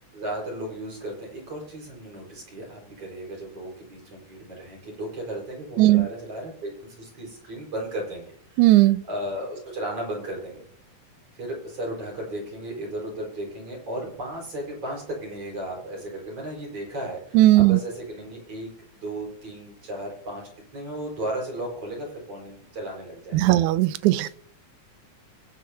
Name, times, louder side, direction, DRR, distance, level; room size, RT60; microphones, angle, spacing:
voice 1, 0.1-10.6 11.3-20.4 20.7-23.7 24.0-24.3, right 1 dB, 50° right, -2 dB, 6.0 m, -35 dB
voice 2, 8.6-9.0 17.3-17.8 23.3-24.3, right 16 dB, 90° right, 16 dB, 2.1 m, -17 dB
23.0 x 9.3 x 2.9 m, 0.65 s
omnidirectional pair, 3.4 m